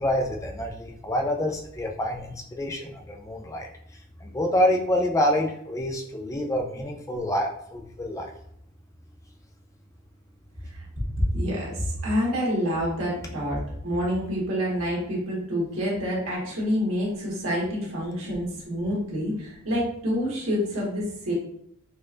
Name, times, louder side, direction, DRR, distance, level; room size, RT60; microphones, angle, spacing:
voice 1, 0.0-3.7 4.2-8.3, left 1 dB, 15° left, 3 dB, 0.3 m, -27 dB
voice 2, 11.3-21.3, equal, 70° right, -4 dB, 1.3 m, -27 dB
4.2 x 2.3 x 2.5 m, 0.71 s
head